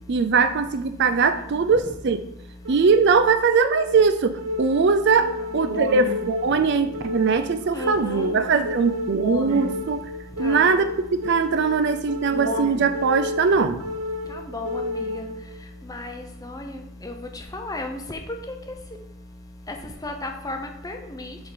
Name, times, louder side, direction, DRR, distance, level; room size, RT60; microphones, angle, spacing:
voice 1, 0.1-2.2 2.7-10.0 10.4-10.8 11.2-13.8, right 5 dB, 50° right, 10 dB, 0.4 m, -21 dB
sound 1, 2.6-15.6, left 1 dB, 85° right, 1.1 m, -31 dB
voice 2, 7.7-8.3 10.4-10.6 14.3-15.3 15.9-17.1 17.5-18.2 20.0-21.4, left 2 dB, 15° left, 4 dB, 0.6 m, -34 dB
7.1 x 3.7 x 5.0 m, 0.79 s
head